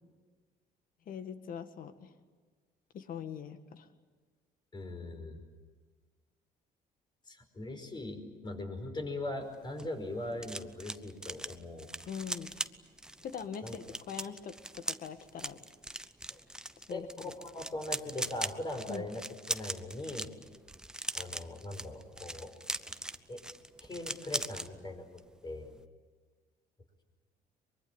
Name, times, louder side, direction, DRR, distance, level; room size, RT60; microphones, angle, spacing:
voice 1, 1.1-2.1 2.9-3.9 12.1-12.5 13.2-15.6 16.9-17.3 18.9-19.0, left 7 dB, 55° left, 9 dB, 1.9 m, -42 dB
voice 2, 4.7-5.4 7.3-11.9 13.6-13.7 16.3-16.4 16.9-19.2 19.5-20.3 21.1-22.5 22.9-23.0 23.3-23.4 23.8-25.7, left 1 dB, 25° left, 5 dB, 5.2 m, -40 dB
sound 1, 9.5-24.7 25.0-25.3 25.5-25.8, right 1 dB, 5° right, 0.8 m, -40 dB
23.5 x 23.0 x 8.9 m, 1.5 s
cardioid pair, 110°, 17 cm